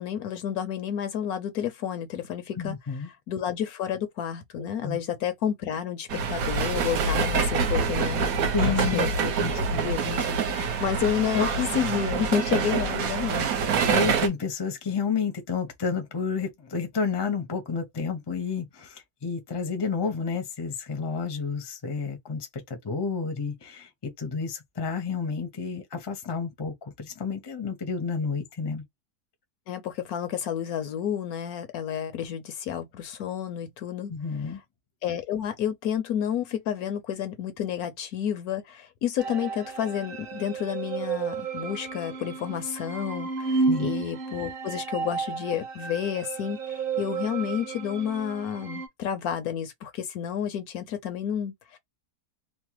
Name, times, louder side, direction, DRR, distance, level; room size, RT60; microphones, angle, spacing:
voice 1, 0.0-2.7 3.3-10.3 10.8-13.5 29.7-34.1 35.0-51.8, left 9 dB, 70° left, 1.0 m, -30 dB
voice 2, 2.6-3.1 4.8-5.0 8.5-9.1 9.4-9.9 10.5-10.8 13.9-28.8 34.1-34.6 43.7-43.9, left 5 dB, 25° left, 0.6 m, -30 dB
sound 1, 6.1-14.3, right 5 dB, 65° right, 1.1 m, -26 dB
sound 2, 39.2-48.9, right 4 dB, 45° right, 0.7 m, -32 dB
3.0 x 2.1 x 3.0 m
omnidirectional pair, 1.8 m